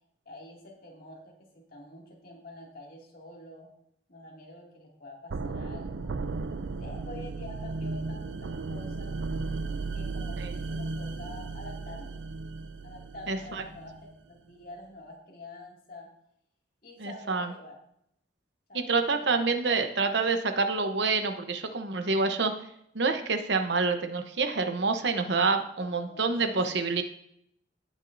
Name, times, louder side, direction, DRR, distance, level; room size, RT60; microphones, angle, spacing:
voice 1, 0.3-3.7 4.1-6.2 6.8-9.2 9.9-12.2 12.8-16.1 16.8-17.8 18.7-19.8 26.1-26.5, left 2 dB, 55° left, -2 dB, 2.5 m, -47 dB
sound 1, 5.3-14.2, right 3 dB, 90° right, 0.6 m, -35 dB
voice 2, 13.3-13.6 17.0-17.5 18.7-22.5 22.9-27.0, right 4 dB, 70° right, 7 dB, 0.9 m, -27 dB
17.0 x 6.2 x 2.7 m, 0.72 s
head